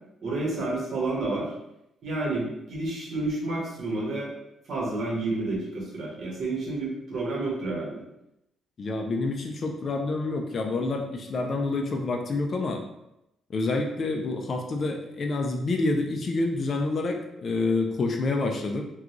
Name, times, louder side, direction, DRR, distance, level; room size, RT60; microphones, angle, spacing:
voice 1, 0.2-1.5 2.0-4.3 4.7-8.0, right 2 dB, 50° right, -4 dB, 1.3 m, -30 dB
voice 2, 8.8-12.8 13.5-18.8, left 3 dB, 40° left, 3 dB, 0.4 m, -28 dB
3.7 x 2.3 x 2.9 m, 0.85 s
cardioid pair, 135°, 0 cm